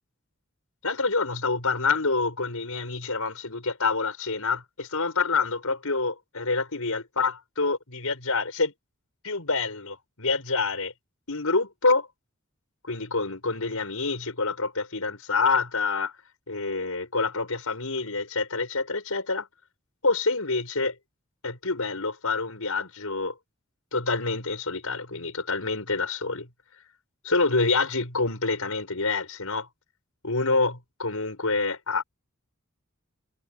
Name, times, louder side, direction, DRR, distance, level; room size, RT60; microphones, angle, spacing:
voice 1, 0.8-8.7 9.2-10.9 11.3-12.1 12.8-16.1 16.5-19.5 20.0-20.9 21.4-23.3 23.9-26.5 27.2-29.7 30.2-32.0, left 3 dB, 85° left, 5.5 m, -27 dB
head